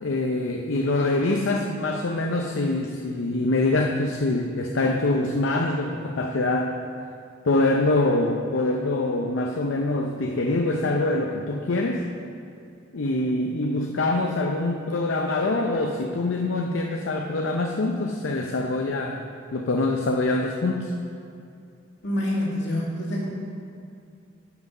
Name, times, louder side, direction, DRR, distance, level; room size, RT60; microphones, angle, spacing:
voice 1, 0.0-6.7 7.4-12.1 12.9-19.2 19.5-20.9, left 2 dB, 85° left, 2 dB, 0.6 m, -24 dB
voice 2, 22.0-23.3, left 1 dB, 65° left, -4 dB, 2.2 m, -26 dB
11.0 x 6.0 x 5.3 m, 2.5 s
head